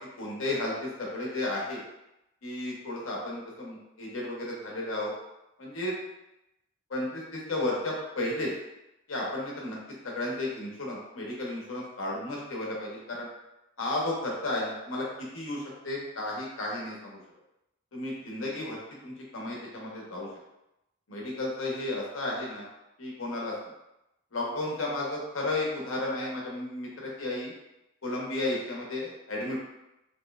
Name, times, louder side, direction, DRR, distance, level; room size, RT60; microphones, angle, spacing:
voice 1, 0.2-1.8 2.4-5.1 5.6-5.9 6.9-8.5 9.1-9.8 10.0-13.3 13.8-15.1 15.3-17.2 17.9-20.3 21.1-22.7 23.0-23.5 24.3-27.5 28.0-29.6, left 2 dB, 80° left, -3 dB, 0.9 m, -33 dB
3.0 x 2.9 x 2.3 m, 0.90 s
head